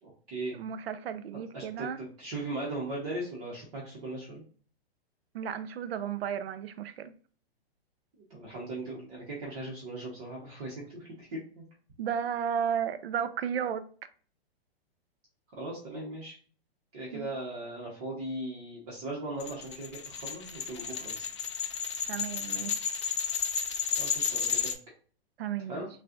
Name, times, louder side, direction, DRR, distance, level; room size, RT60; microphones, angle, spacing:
voice 1, 0.0-0.6 1.5-4.4 8.3-11.6 15.5-16.4 16.9-21.2 24.0-24.7 25.7-25.9, right 2 dB, 35° right, 1.1 m, -38 dB
voice 2, 0.5-2.0 5.3-7.1 12.0-13.9 17.1-17.3 22.1-23.0 25.4-25.8, right 8 dB, 70° right, 0.5 m, -34 dB
sound 1, 19.4-24.7, left 7 dB, 30° left, 0.4 m, -32 dB
6.4 x 2.5 x 2.5 m
hypercardioid pair, 165°, 31 cm